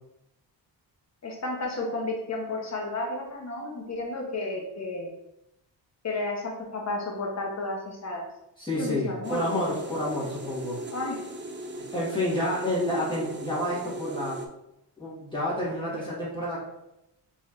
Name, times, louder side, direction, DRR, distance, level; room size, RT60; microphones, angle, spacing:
voice 1, 1.2-5.1 6.0-8.3 8.8-9.4 10.9-11.2, left 2 dB, 35° left, 1 dB, 1.0 m, -32 dB
voice 2, 8.6-10.8 11.9-14.4 15.0-16.6, left 1 dB, 10° left, -9 dB, 1.5 m, -29 dB
sound 1, 9.2-14.5, right 1 dB, 25° right, 0.4 m, -38 dB
4.0 x 3.2 x 2.5 m, 0.87 s
cardioid pair, 85°, 44 cm